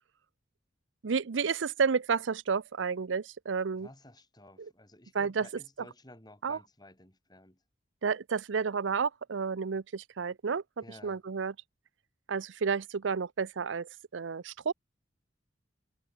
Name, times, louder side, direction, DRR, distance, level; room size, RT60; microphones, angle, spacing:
voice 1, 1.0-3.9 4.6-4.7 5.1-5.5 5.8-5.9 6.4-6.6 8.0-11.5 12.3-14.7, right 5 dB, 90° right, 0.6 m, -31 dB
voice 2, 3.8-7.6 10.8-11.2, left 1 dB, 20° left, 7.6 m, -54 dB
head